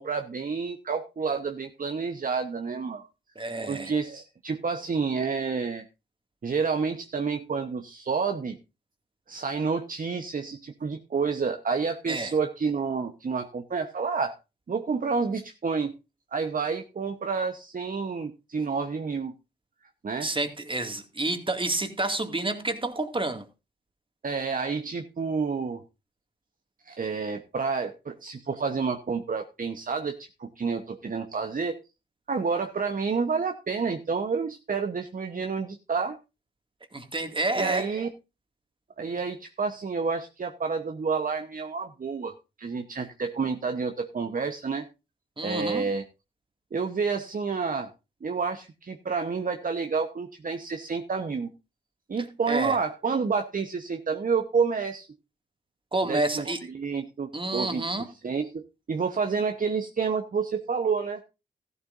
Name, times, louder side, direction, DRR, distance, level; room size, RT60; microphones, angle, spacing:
voice 1, 0.0-3.1 3.7-5.8 6.4-8.6 9.3-14.3 14.7-15.9 16.3-19.3 20.0-20.3 24.2-25.8 26.8-31.8 32.3-36.2 37.6-38.1 39.0-44.9 45.4-46.0 46.7-47.9 48.2-51.5 52.1-55.1 56.0-58.6 58.9-61.2, right 5 dB, 45° right, 1.1 m, -29 dB
voice 2, 3.4-3.9 12.1-12.3 20.2-23.4 36.9-37.9 45.4-45.9 52.5-52.8 55.9-56.6 57.3-58.0, right 2 dB, 25° right, 2.3 m, -29 dB
14.0 x 12.5 x 2.6 m
supercardioid pair, 45°, 20 cm